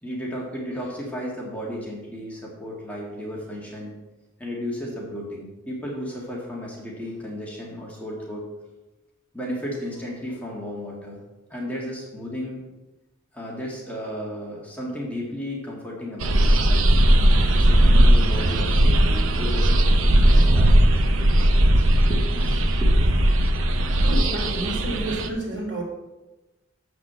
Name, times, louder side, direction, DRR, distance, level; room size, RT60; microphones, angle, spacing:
voice 1, 0.0-4.0 4.4-8.5 9.3-11.2 11.5-12.6 13.3-16.9 17.5-23.1, left 1 dB, 5° left, -4 dB, 1.8 m, -34 dB
sound 1, 16.2-25.3, right 1 dB, 85° right, 0.8 m, -18 dB
voice 2, 24.0-25.8, right 1 dB, 55° right, -2 dB, 3.3 m, -30 dB
7.4 x 6.1 x 7.4 m, 1.1 s
head